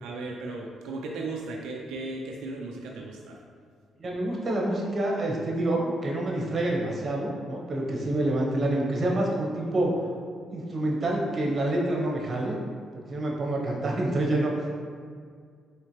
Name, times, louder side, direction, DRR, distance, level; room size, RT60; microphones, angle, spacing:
voice 1, 0.0-3.4, right 2 dB, 90° right, 0 dB, 0.3 m, -36 dB
voice 2, 4.0-9.9 10.5-12.6 12.9-14.7, right 1 dB, 40° right, -2 dB, 0.9 m, -27 dB
4.2 x 3.2 x 3.2 m, 2.1 s
cardioid pair, 90°, 0 cm